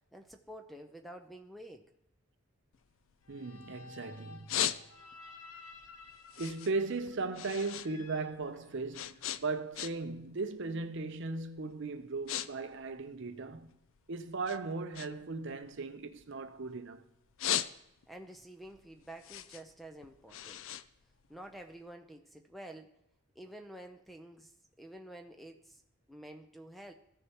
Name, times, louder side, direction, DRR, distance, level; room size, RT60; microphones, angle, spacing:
voice 1, 0.1-1.9 18.1-20.6 21.3-22.9 23.4-24.5 24.8-25.8 26.1-26.9, right 1 dB, ahead, 0.5 m, -49 dB
sound 1, 2.7-3.9 4.2-5.3 5.7-7.9 8.2-10.2 10.5-10.9 11.5-11.6 11.9-12.5 12.7-14.0 14.4-16.8 17.2-18.2 18.6-21.7, left 11 dB, 60° left, 0.4 m, -38 dB
sound 2, 3.2-9.2, left 4 dB, 90° left, 0.9 m, -54 dB
voice 2, 3.3-4.7 6.4-13.8 14.1-17.0, right 3 dB, 55° right, 0.6 m, -37 dB
15.0 x 6.6 x 2.9 m
head